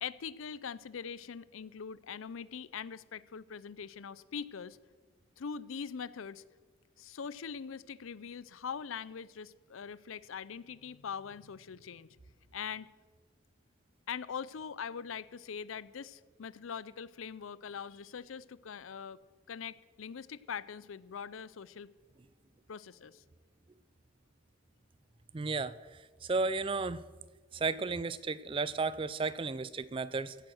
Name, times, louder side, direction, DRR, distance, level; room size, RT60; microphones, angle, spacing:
voice 1, 0.0-4.8 5.4-6.4 7.0-12.1 12.5-12.9 14.1-19.2 19.5-21.9 22.7-23.2, left 6 dB, 80° left, 19 dB, 0.5 m, -42 dB
voice 2, 25.3-27.0 27.5-30.4, right 4 dB, 25° right, 17 dB, 0.4 m, -34 dB
16.0 x 9.0 x 6.3 m, 1.4 s
head